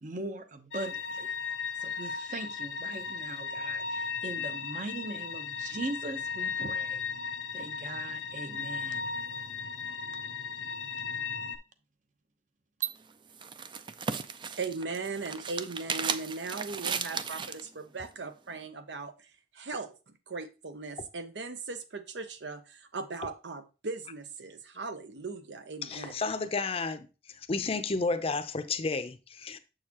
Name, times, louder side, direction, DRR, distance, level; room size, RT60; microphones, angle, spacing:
voice 1, 0.0-1.3 1.8-7.0 7.5-9.0 12.8-12.9, right 3 dB, 45° right, 0.8 m, -39 dB
sound 1, 0.7-11.6, left 5 dB, 80° left, 0.7 m, -36 dB
sound 2, 12.8-17.7, right 6 dB, 25° right, 0.3 m, -36 dB
voice 2, 14.6-19.9 20.3-26.1, right 4 dB, 85° right, 0.8 m, -38 dB
voice 3, 25.8-27.1 27.5-29.6, left 3 dB, 35° left, 0.5 m, -31 dB
7.1 x 6.5 x 2.9 m
head